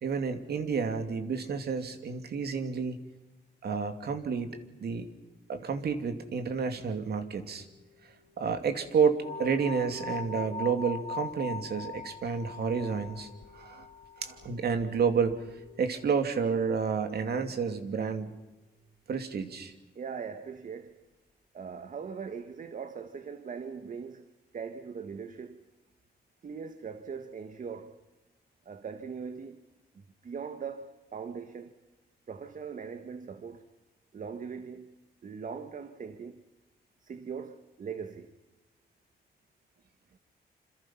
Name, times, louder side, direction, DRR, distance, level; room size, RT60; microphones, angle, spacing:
voice 1, 0.0-3.0 3.6-5.1 5.5-7.6 8.4-13.9 14.2-15.4 15.8-18.3 19.1-19.7, right 6 dB, 70° right, 2.7 m, -30 dB
sound 1, 6.3-18.3 18.7-18.8, equal, 65° left, 2.8 m, -52 dB
sound 2, 9.2-14.3, left 4 dB, 40° left, 1.1 m, -40 dB
voice 2, 19.9-21.0 21.5-25.6 26.4-28.0 28.6-29.6 29.9-31.7 32.3-33.6 34.1-34.9 35.2-36.4 37.0-38.3, right 6 dB, 50° right, 1.5 m, -40 dB
27.5 x 27.0 x 5.8 m
wide cardioid pair, 150°, 17 cm